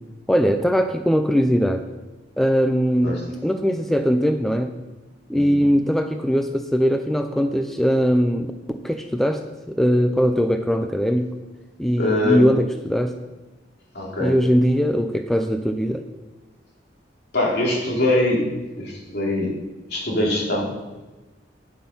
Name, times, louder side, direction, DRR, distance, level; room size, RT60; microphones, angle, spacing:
voice 1, 0.3-1.8 2.4-4.7 5.3-8.5 8.8-11.3 11.8-13.1 14.2-16.0, equal, ahead, 6 dB, 0.5 m, -20 dB
voice 2, 5.3-5.7 12.0-12.4 13.9-14.3 17.3-18.4 18.7-19.5 19.9-20.7, left 2 dB, 65° left, -3 dB, 3.0 m, -22 dB
9.7 x 8.2 x 5.5 m, 1.1 s
head